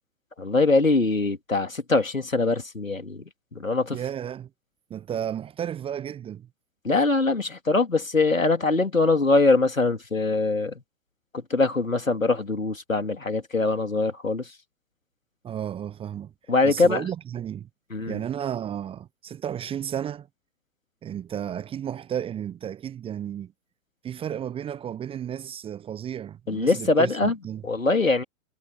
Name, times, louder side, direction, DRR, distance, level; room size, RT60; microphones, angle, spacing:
voice 1, 0.4-3.2 3.5-4.0 6.8-10.8 11.3-14.5 16.5-17.0 17.9-18.2 26.5-27.3 27.6-28.2, left 3 dB, 85° left, 3.1 m, -23 dB
voice 2, 3.9-4.5 4.9-6.5 15.4-16.3 16.6-17.7 18.1-20.3 21.0-23.5 24.0-27.6, right 9 dB, 15° right, 0.9 m, -33 dB
figure-of-eight pair, 105°, 39 cm